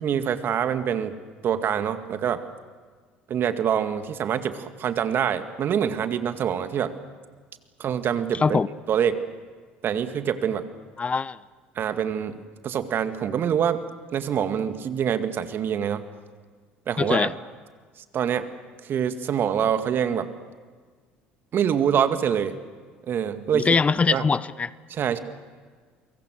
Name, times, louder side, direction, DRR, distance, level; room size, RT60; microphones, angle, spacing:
voice 1, 0.0-1.1 1.4-2.4 3.3-6.9 7.8-8.6 8.9-9.2 9.8-10.7 11.8-12.4 12.6-13.8 14.1-16.0 16.9-17.4 18.1-18.5 18.8-20.3 21.5-22.5 23.1-23.8 24.1-24.2 24.9-25.2, right 8 dB, 50° right, 9 dB, 2.1 m, -25 dB
voice 2, 11.0-11.4 17.0-17.3 23.5-24.7, left 5 dB, 25° left, 19 dB, 0.8 m, -22 dB
29.0 x 24.0 x 6.5 m, 1.5 s
hypercardioid pair, 65°, 5 cm